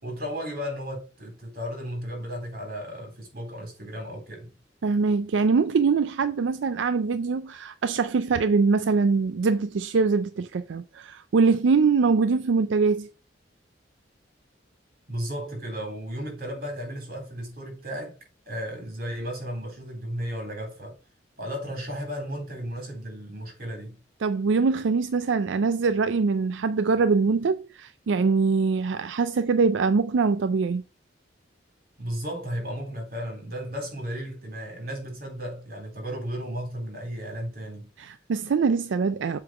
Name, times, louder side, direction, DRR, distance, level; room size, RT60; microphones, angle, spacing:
voice 1, 0.0-4.5 15.1-18.2 18.4-21.0 21.4-24.0 32.0-37.9, equal, 50° right, 3.6 m, -34 dB
voice 2, 4.8-13.1 24.2-30.8 38.0-39.4, right 4 dB, 85° right, 0.4 m, -23 dB
7.7 x 3.9 x 4.9 m
head